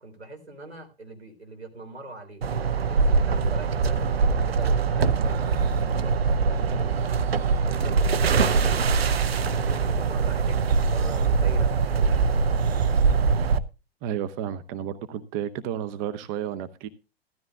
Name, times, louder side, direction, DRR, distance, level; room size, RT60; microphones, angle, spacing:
voice 1, 0.0-2.4 2.9-7.0 7.4-12.2, right 2 dB, 85° right, 3 dB, 3.5 m, -42 dB
sound 1, 2.4-13.6, right 5 dB, 70° right, 0.8 m, -23 dB
voice 2, 14.0-16.9, right 10 dB, 30° right, 13 dB, 0.8 m, -32 dB
15.5 x 12.5 x 2.4 m, 0.29 s
figure-of-eight pair, 100°, 32 cm